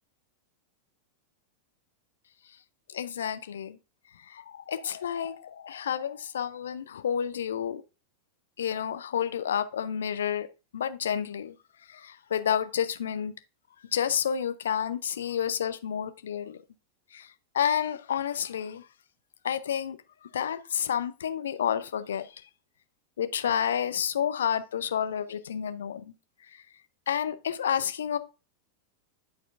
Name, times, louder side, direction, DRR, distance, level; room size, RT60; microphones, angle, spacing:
voice 1, 2.9-3.8 4.2-7.8 8.6-10.5 10.7-11.5 11.9-13.3 13.9-16.6 17.1-17.3 17.5-18.9 19.4-20.0 20.3-22.3 23.2-26.1 27.1-28.2, left 8 dB, 65° left, 0.5 m, -30 dB
10.5 x 4.4 x 2.5 m
figure-of-eight pair, 90°, 0 cm